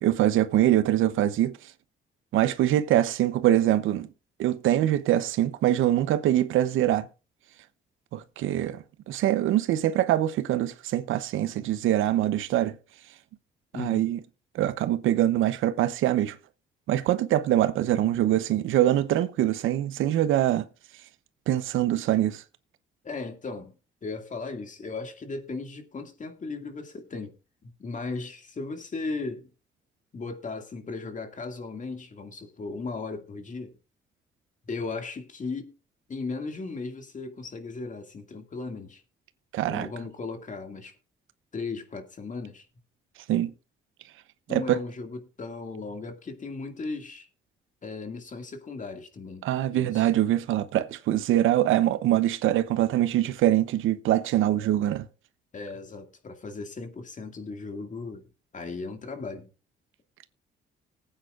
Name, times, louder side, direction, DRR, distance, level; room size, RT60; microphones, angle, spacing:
voice 1, 0.0-1.6 2.3-4.1 4.4-7.1 8.1-12.8 13.7-14.2 14.5-16.4 16.9-20.7 21.5-22.4 39.5-39.9 43.3-43.5 44.5-44.8 49.4-55.1, right 13 dB, 85° right, 0.8 m, -24 dB
voice 2, 13.7-14.1 23.0-23.7 24.0-27.3 27.6-29.5 30.1-33.8 34.6-35.7 36.1-39.0 39.6-41.0 41.5-42.7 44.5-47.3 47.8-50.1 55.5-59.5, left 3 dB, 40° left, 2.2 m, -36 dB
19.0 x 8.9 x 2.5 m
cardioid pair, 90°, 20 cm